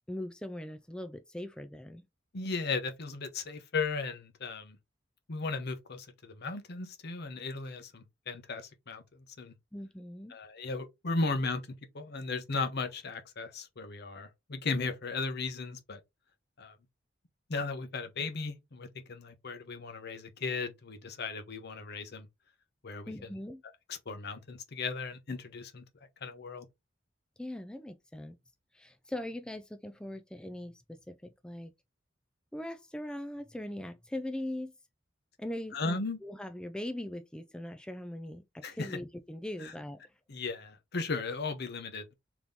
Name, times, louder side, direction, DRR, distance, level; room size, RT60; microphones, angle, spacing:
voice 1, 0.1-2.0 9.7-10.4 23.1-23.6 27.4-28.4 28.7-31.7 32.5-34.7 35.4-40.0, left 1 dB, 5° left, 0.3 m, -40 dB
voice 2, 2.3-4.8 5.3-9.0 9.4-9.5 10.3-11.6 11.9-16.0 16.6-16.8 17.5-22.3 22.8-23.1 23.9-25.8 26.2-26.7 35.7-36.2 38.6-39.0 39.6-39.7 40.3-42.1, left 3 dB, 60° left, 0.8 m, -36 dB
3.6 x 3.0 x 3.7 m
head